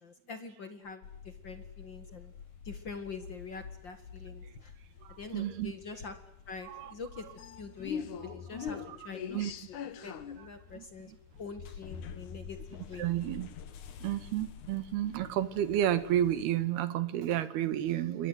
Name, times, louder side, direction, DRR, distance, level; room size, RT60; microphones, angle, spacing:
voice 1, 0.0-2.3 2.6-4.7 5.2-6.2 6.5-11.1 11.4-13.0, left 4 dB, 80° left, 9 dB, 1.0 m, -45 dB
sound 1, 1.0-16.7, left 7 dB, 60° left, 2.1 m, -45 dB
voice 2, 5.0-5.7 6.7-6.9 8.9-9.0 9.3-9.5 10.8-10.9 13.0-13.5 14.0-18.3, right 11 dB, 65° right, 14 dB, 3.3 m, -31 dB
28.5 x 24.0 x 8.1 m, 0.76 s
omnidirectional pair, 5.5 m